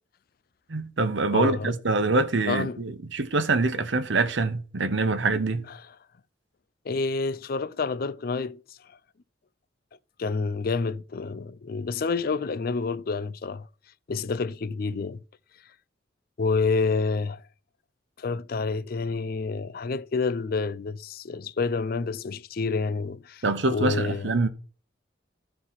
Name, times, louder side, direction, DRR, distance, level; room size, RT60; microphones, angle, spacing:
voice 1, 0.7-5.7 23.4-24.5, right 3 dB, 75° right, 0.9 m, -25 dB
voice 2, 1.3-1.7 2.5-2.8 6.9-8.6 10.2-13.7 14.1-15.2 16.4-17.4 18.2-23.4 23.7-24.3, left 4 dB, 55° left, 0.4 m, -28 dB
13.0 x 4.5 x 4.2 m
head